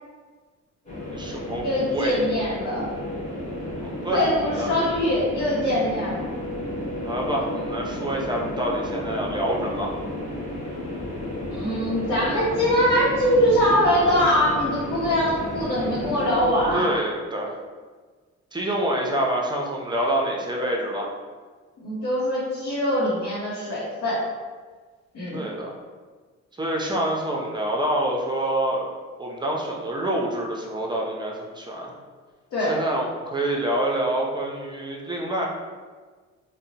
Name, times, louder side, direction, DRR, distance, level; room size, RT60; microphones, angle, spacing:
sound 1, 0.9-16.8, left 1 dB, 25° left, 0.9 m, -32 dB
voice 1, 1.1-2.2 3.8-4.3 4.6-4.9 7.0-9.9 16.7-17.6 18.5-21.1 25.3-25.7 26.6-28.9 29.2-31.9 32.6-35.5, right 1 dB, 15° right, -1 dB, 0.5 m, -27 dB
voice 2, 1.6-2.8 4.1-6.3 11.5-16.9 21.8-24.2 25.1-25.5 32.5-32.8, equal, 75° left, -8 dB, 0.8 m, -23 dB
2.7 x 2.1 x 2.7 m, 1.4 s
cardioid pair, 90°, 30 cm